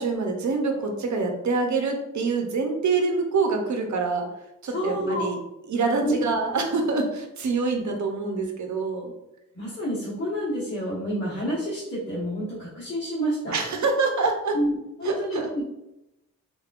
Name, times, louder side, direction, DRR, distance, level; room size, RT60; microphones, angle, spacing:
voice 1, 0.0-4.3 4.6-5.4 5.7-9.1 13.5-14.6 15.0-15.5, right 4 dB, 60° right, 3 dB, 0.7 m, -25 dB
voice 2, 4.7-5.3 6.0-6.2 9.5-13.6 14.5-15.6, equal, 50° left, -9 dB, 1.2 m, -28 dB
3.8 x 3.5 x 2.4 m, 0.89 s
wide cardioid pair, 175°, 32 cm